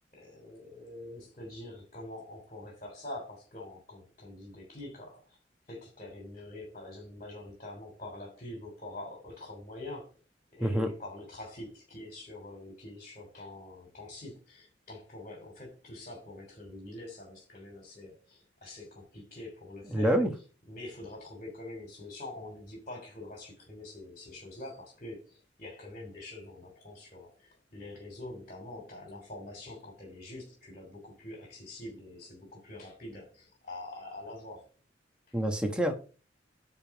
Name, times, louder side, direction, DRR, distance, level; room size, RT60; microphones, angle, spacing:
voice 1, 0.1-5.4 5.7-10.2 10.5-20.2 20.7-34.7 35.3-35.4, left 2 dB, 40° left, 2.9 m, -45 dB
voice 2, 19.9-20.3 35.3-35.9, equal, 5° right, 1.2 m, -27 dB
9.8 x 3.7 x 7.0 m
head